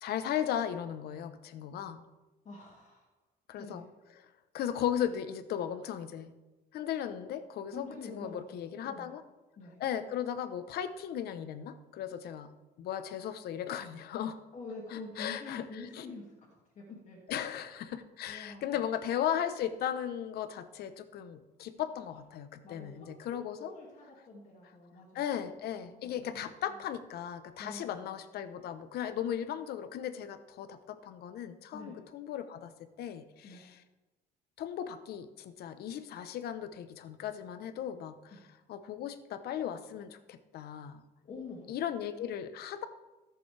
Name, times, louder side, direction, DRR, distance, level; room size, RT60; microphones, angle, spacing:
voice 1, 0.0-2.0 3.5-3.8 4.2-4.3 4.5-6.3 6.7-9.2 9.8-12.5 12.8-14.4 14.9-16.1 17.3-23.7 25.1-33.8 34.6-38.4 38.7-41.0 41.7-42.9, left 9 dB, 70° left, 10 dB, 0.9 m, -37 dB
voice 2, 2.4-3.1 3.6-3.9 7.7-9.1 9.6-9.8 14.5-17.2 18.3-18.8 22.6-23.1 23.6-25.2 25.8-26.6 27.6-28.1 31.7-32.0 33.4-33.6 38.3-38.4 41.2-41.7, left 3 dB, 45° left, -3 dB, 2.3 m, -46 dB
16.5 x 7.0 x 3.4 m, 1.1 s
cardioid pair, 110°, 17 cm